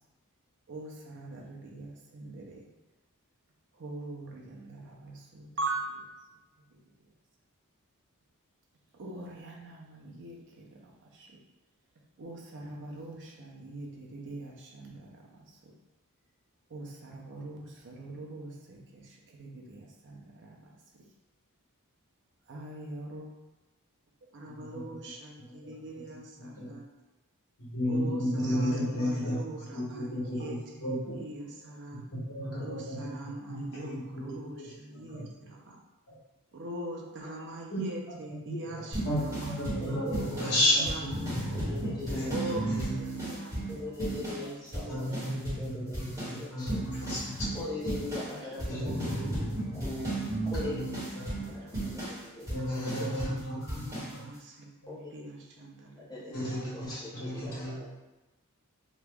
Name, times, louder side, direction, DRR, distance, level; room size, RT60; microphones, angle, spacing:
voice 1, 0.7-2.7 3.7-6.1 8.9-11.4 12.2-15.7 16.7-21.1 22.5-23.3 24.3-26.9 27.9-32.1 32.6-35.8 36.5-39.5 40.1-41.1 42.3-45.1 45.6-45.7 48.2-51.8 53.2-56.3, right 2 dB, 55° right, -1 dB, 0.6 m, -43 dB
voice 2, 26.4-26.8 27.6-29.4 29.7-30.5 30.8-31.2 31.9-33.1 33.5-34.7 35.1-35.2 36.1-36.2 37.7-37.8 38.4-42.9 44.9-47.4 48.7-49.5 50.6-50.8 51.1-51.4 52.5-53.9 54.1-54.3 56.3-57.8, equal, 65° left, -7 dB, 1.4 m, -33 dB
sound 1, 38.9-44.5 44.7-45.7 45.9-53.4 53.7-54.1, right 1 dB, 15° right, 1.2 m, -35 dB
voice 3, 39.8-40.4 41.5-42.6 43.7-44.8 45.4-46.8 47.5-48.9 49.7-49.8 50.5-50.9 51.5-51.6 51.9-52.0 52.4-53.1 54.9-55.1 56.0-57.9, left 2 dB, 20° left, -6 dB, 0.9 m, -41 dB
3.0 x 2.3 x 3.4 m, 1.1 s
head